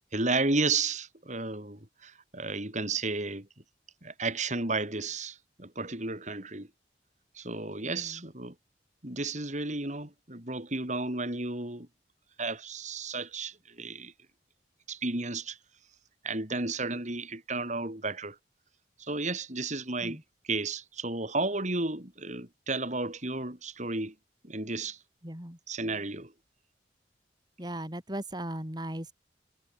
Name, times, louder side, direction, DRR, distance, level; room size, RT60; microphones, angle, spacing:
voice 1, 0.1-3.5 4.0-6.7 7.4-8.5 9.0-11.9 12.4-14.1 14.9-15.6 16.2-18.4 19.0-20.2 20.5-24.1 24.4-25.0 25.7-26.3, right 3 dB, 40° right, 4.5 m, -33 dB
voice 2, 7.8-8.2 20.0-20.2 25.2-25.6 27.6-29.1, right 1 dB, 25° right, 5.3 m, -38 dB
head